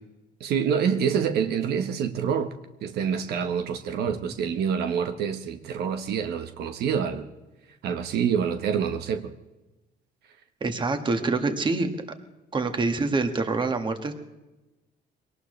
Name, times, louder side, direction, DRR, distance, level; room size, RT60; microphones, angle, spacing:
voice 1, 0.4-2.5 2.8-7.3 7.8-9.3, right 7 dB, 75° right, 7 dB, 1.3 m, -26 dB
voice 2, 10.6-12.0 12.5-14.1, right 3 dB, 30° right, 7 dB, 1.8 m, -26 dB
22.5 x 19.0 x 3.3 m, 1.1 s
cardioid pair, 110°, 17 cm